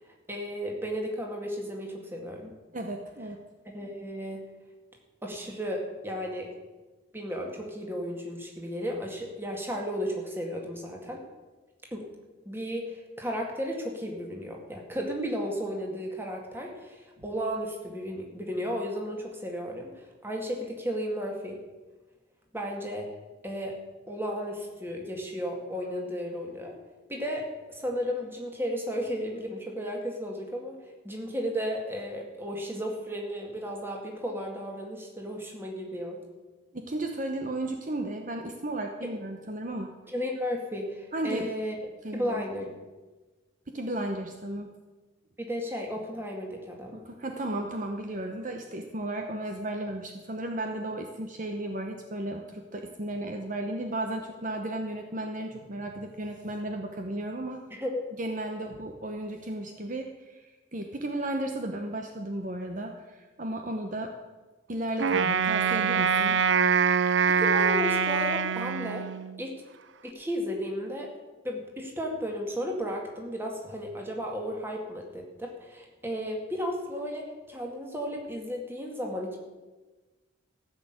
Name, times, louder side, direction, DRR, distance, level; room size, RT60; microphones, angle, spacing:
voice 1, 0.3-2.5 3.7-4.4 5.2-6.5 7.1-11.2 11.9-12.1 12.5-21.6 22.5-23.1 23.4-23.8 24.1-26.7 27.1-30.8 31.0-36.2 40.1-41.8 42.1-42.7 45.4-47.0 57.7-58.0 67.3-69.1 69.4-69.5 70.0-71.1 71.4-79.4, equal, 10° right, 0 dB, 2.1 m, -34 dB
voice 2, 2.7-3.4 36.7-39.9 41.1-41.5 42.0-42.4 43.7-44.7 46.9-57.6 58.2-64.1 64.7-66.4, right 1 dB, 40° right, 4 dB, 0.9 m, -34 dB
Wind instrument woodwind instrument, 65.0-69.4, right 6 dB, 65° right, 0.5 m, -24 dB
14.5 x 6.4 x 8.9 m, 1.2 s
head